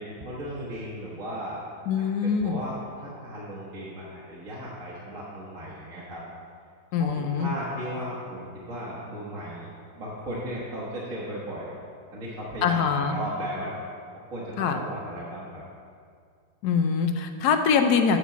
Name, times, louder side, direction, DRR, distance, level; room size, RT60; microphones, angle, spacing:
voice 1, 0.0-1.6 1.9-6.2 7.0-11.7 12.1-13.8 14.3-15.6, equal, 50° right, -7 dB, 1.5 m, -36 dB
voice 2, 1.9-2.6 6.9-7.5 12.6-13.2 14.6-14.8 16.6-18.2, left 6 dB, 70° left, 6 dB, 1.1 m, -23 dB
8.3 x 4.4 x 7.0 m, 2.2 s
omnidirectional pair, 1.9 m